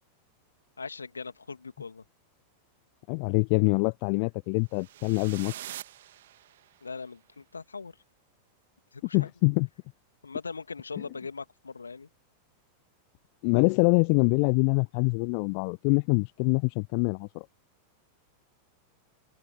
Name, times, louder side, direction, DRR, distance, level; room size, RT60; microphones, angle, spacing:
voice 1, 0.8-2.0 6.8-7.9 8.9-9.3 10.2-12.1, left 4 dB, 75° left, 2.6 m, -40 dB
voice 2, 3.1-5.5 9.1-9.7 13.4-17.5, left 40 dB or more, 45° left, 0.3 m, -25 dB
sound 1, 4.7-6.9, right 13 dB, 60° right, 1.9 m, -44 dB
figure-of-eight pair, 90°, 0 cm